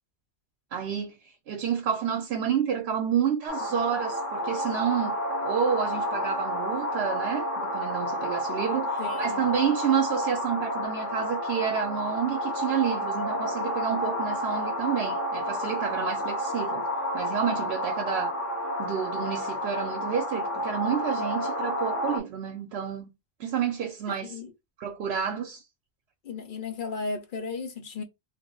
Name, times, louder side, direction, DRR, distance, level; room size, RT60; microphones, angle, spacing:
voice 1, 0.7-5.2 5.4-16.9 17.1-18.3 18.8-23.1 23.4-24.4 24.8-25.6, right 8 dB, 80° right, 0.8 m, -29 dB
sound 1, 3.5-22.2, equal, 20° left, 0.7 m, -30 dB
voice 2, 9.0-9.4 24.1-24.5 26.2-28.0, left 4 dB, 55° left, 0.7 m, -35 dB
2.4 x 2.0 x 3.7 m
omnidirectional pair, 1.1 m